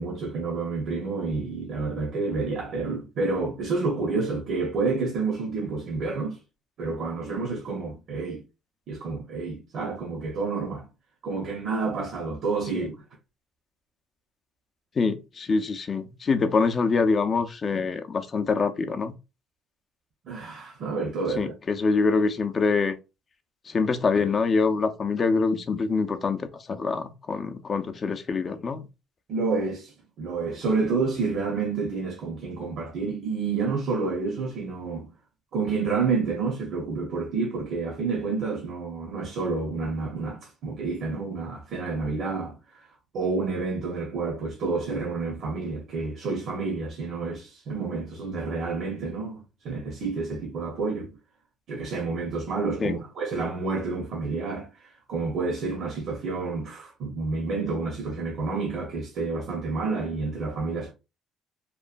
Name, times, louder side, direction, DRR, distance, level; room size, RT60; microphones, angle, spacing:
voice 1, 0.0-6.4 6.8-8.4 8.9-10.9 11.2-12.9 20.2-21.5 29.3-35.1 35.5-42.9 43.1-51.1 51.7-60.9, right 4 dB, 60° right, 0.8 m, -29 dB
voice 2, 15.0-19.1 21.4-23.0 23.7-28.8 52.8-53.0, left 4 dB, 35° left, 0.4 m, -25 dB
3.0 x 2.2 x 2.4 m
cardioid pair, 120°, 0 cm